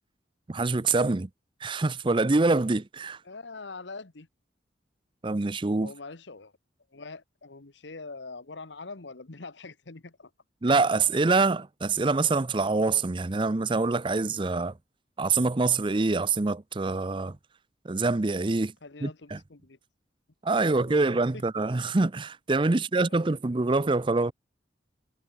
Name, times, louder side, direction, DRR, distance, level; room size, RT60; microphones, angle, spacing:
voice 1, 0.5-1.3 1.6-3.2 5.2-5.9 10.6-14.7 15.2-17.4 17.8-18.7 19.0-19.4 20.4-24.3, right 3 dB, 25° right, 0.5 m, -25 dB
voice 2, 3.2-4.3 5.8-6.5 6.9-10.3 18.8-19.8 20.5-21.4 22.7-23.2, left 3 dB, 75° left, 1.3 m, -44 dB
head